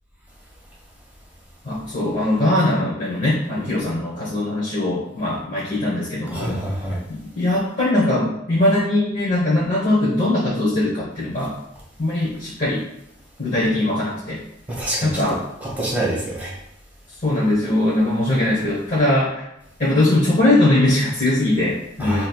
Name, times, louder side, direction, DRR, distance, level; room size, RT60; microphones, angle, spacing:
voice 1, 1.6-6.6 7.2-11.5 12.0-12.8 13.4-14.4 15.0-15.4 17.2-19.5 19.8-22.3, left 1 dB, 40° left, -9 dB, 1.0 m, -20 dB
voice 2, 6.3-7.0 14.7-15.2 15.6-16.5 22.0-22.3, right 1 dB, 10° right, -4 dB, 1.2 m, -26 dB
5.3 x 2.8 x 2.3 m, 0.82 s
head